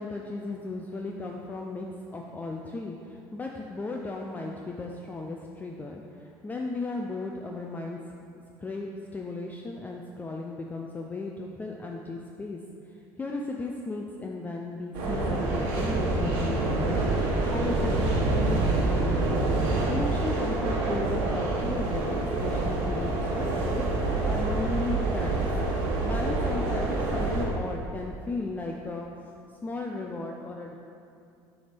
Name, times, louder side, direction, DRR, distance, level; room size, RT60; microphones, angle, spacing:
voice 1, 0.0-8.1 8.6-12.6 12.9-19.4 19.9-23.9 24.3-29.3 29.6-30.8, left 3 dB, 15° left, 0 dB, 0.4 m, -36 dB
sound 1, 14.9-27.5, right 2 dB, 80° right, 1.3 m, -27 dB
6.8 x 3.4 x 5.2 m, 2.5 s
supercardioid pair, 95°, 9 cm